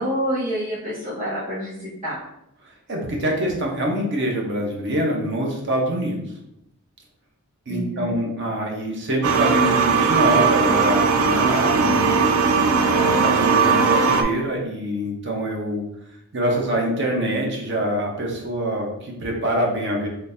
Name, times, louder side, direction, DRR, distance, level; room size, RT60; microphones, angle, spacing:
voice 1, 0.0-2.2 7.7-8.1, equal, 35° right, -12 dB, 1.3 m, -27 dB
voice 2, 2.9-6.2 7.7-12.2 12.9-15.8 16.3-20.1, right 1 dB, 55° right, 0 dB, 0.8 m, -25 dB
sound 1, 9.2-14.2, right 5 dB, 75° right, 0.4 m, -18 dB
3.8 x 3.2 x 2.6 m, 0.81 s
head